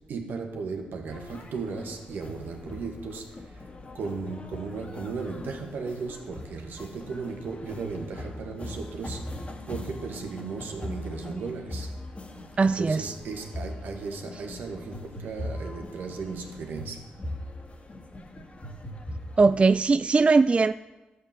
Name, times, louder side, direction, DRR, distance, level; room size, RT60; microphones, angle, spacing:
voice 1, 0.1-3.3 3.9-9.3 9.7-11.9 12.6-17.1, right 4 dB, 75° right, 1.7 m, -36 dB
sound 1, 1.1-19.8, left 1 dB, 40° left, 2.3 m, -41 dB
voice 2, 12.6-13.0 19.4-20.7, right 4 dB, 35° right, 0.3 m, -20 dB
12.0 x 7.7 x 7.5 m
supercardioid pair, 50°, 3 cm